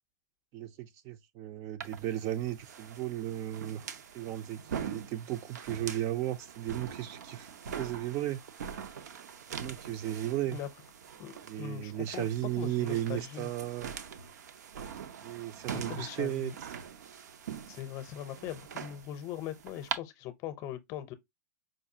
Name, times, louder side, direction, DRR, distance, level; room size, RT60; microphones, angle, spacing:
voice 1, 0.5-3.9 4.1-7.5 7.8-8.4 9.5-10.6 11.4-13.9 15.2-16.5, right 13 dB, 35° right, 0.4 m, -35 dB
sound 1, 1.8-20.0, right 7 dB, 80° right, 0.6 m, -43 dB
voice 2, 11.2-12.3 12.6-13.5 15.7-16.6 17.7-21.1, left 11 dB, 35° left, 0.6 m, -40 dB
5.0 x 2.3 x 2.7 m
hypercardioid pair, 130°, 9 cm